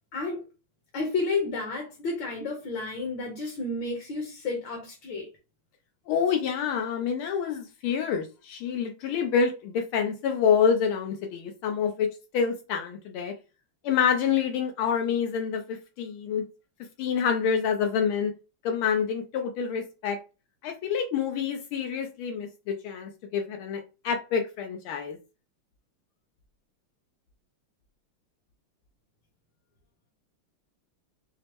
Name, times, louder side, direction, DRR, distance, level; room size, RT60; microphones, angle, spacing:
voice 1, 0.1-0.4 0.9-5.3, left 3 dB, 65° left, 1.6 m, -31 dB
voice 2, 6.1-13.3 13.8-16.4 17.0-18.3 18.6-20.2 20.6-25.2, left 7 dB, 85° left, 1.5 m, -27 dB
5.0 x 2.0 x 2.9 m
omnidirectional pair, 2.3 m